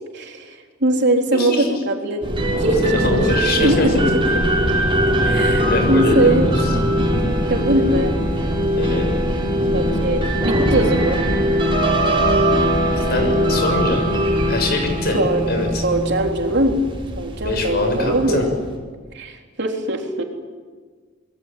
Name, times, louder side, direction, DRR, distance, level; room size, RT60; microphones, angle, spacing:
voice 1, 0.1-2.2 2.6-2.9 3.6-4.2 5.3-6.5 7.5-8.2 9.7-11.2 15.1-15.4 15.8-16.8 17.2-18.5 19.1-20.2, right 1 dB, 60° right, 2 dB, 3.7 m, -21 dB
voice 2, 1.3-1.8 2.9-4.0 5.7-6.7 8.8-9.1 12.9-14.2 14.5-15.2 15.5-15.8 17.5-18.4, left 2 dB, 55° left, 4 dB, 6.8 m, -23 dB
sound 1, 2.2-18.7, equal, 25° right, 5.9 m, -20 dB
26.5 x 21.0 x 9.3 m, 1.5 s
head